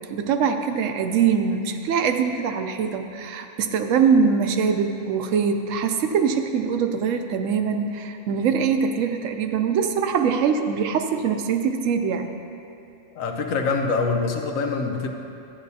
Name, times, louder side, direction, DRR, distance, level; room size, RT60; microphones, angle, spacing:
voice 1, 0.1-12.3, right 6 dB, 75° right, 7 dB, 1.0 m, -23 dB
voice 2, 13.1-15.1, left 4 dB, 90° left, 3 dB, 1.2 m, -24 dB
12.5 x 9.6 x 2.7 m, 2.7 s
omnidirectional pair, 1.4 m